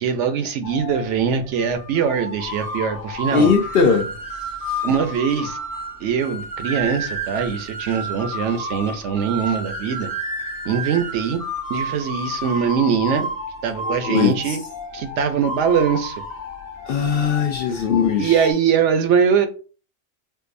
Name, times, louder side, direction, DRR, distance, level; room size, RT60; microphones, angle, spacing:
voice 1, 0.0-3.5 4.8-5.6 6.0-10.1 10.7-11.4 11.7-13.3 13.6-14.6 14.9-16.1 17.7-17.8 18.2-19.5, right 7 dB, 70° right, 7 dB, 0.8 m, -22 dB
sound 1, 0.6-18.5, equal, 20° left, 0.6 m, -31 dB
voice 2, 3.3-4.1 13.8-14.6 16.9-18.5, left 5 dB, 60° left, 4 dB, 0.6 m, -19 dB
4.5 x 2.4 x 2.5 m, 0.37 s
omnidirectional pair, 1.3 m